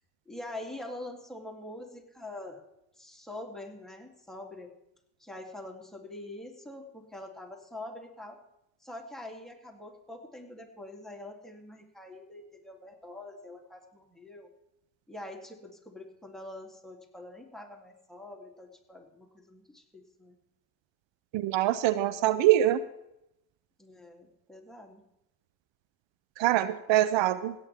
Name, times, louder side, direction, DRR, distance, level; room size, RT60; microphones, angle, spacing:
voice 1, 0.3-2.6 3.0-4.7 5.2-8.4 8.8-14.5 15.1-20.4 23.8-25.0, left 1 dB, ahead, -1 dB, 3.0 m, -44 dB
voice 2, 21.3-22.8 26.4-27.5, right 13 dB, 75° right, 15 dB, 0.6 m, -24 dB
17.0 x 9.6 x 3.6 m, 0.83 s
supercardioid pair, 45°, 45 cm